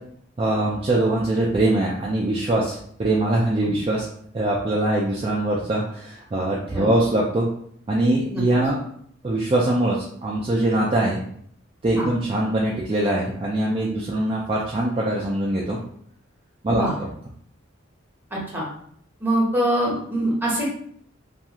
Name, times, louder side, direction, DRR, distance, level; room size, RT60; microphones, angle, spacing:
voice 1, 0.4-4.1 4.3-7.5 7.9-8.8 9.2-11.2 11.8-15.8 16.6-16.9, right 1 dB, 25° right, -4 dB, 0.3 m, -22 dB
voice 2, 18.3-18.7 19.2-20.7, right 1 dB, 10° right, -5 dB, 0.7 m, -23 dB
2.4 x 2.3 x 2.8 m, 0.64 s
head